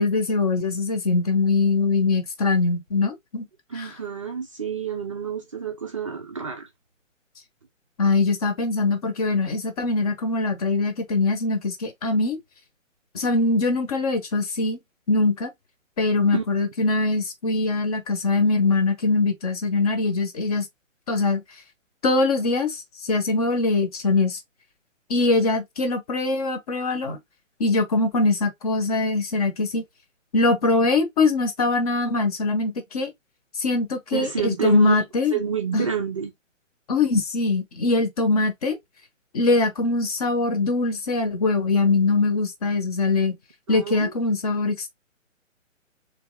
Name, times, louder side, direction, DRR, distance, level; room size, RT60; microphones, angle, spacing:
voice 1, 0.0-3.5 3.7-3.9 8.0-12.4 13.1-14.8 15.1-15.5 16.0-20.7 21.1-21.4 22.0-24.4 25.1-27.2 27.6-29.8 30.3-33.1 33.6-35.4 35.7-35.9 36.9-38.8 39.3-43.4 43.7-44.9, left 3 dB, 30° left, 1.0 m, -22 dB
voice 2, 3.7-6.7 16.3-16.4 34.1-35.1 35.3-36.3 43.7-44.1, right 7 dB, 25° right, 0.6 m, -28 dB
3.3 x 3.3 x 4.6 m
hypercardioid pair, 150°, 39 cm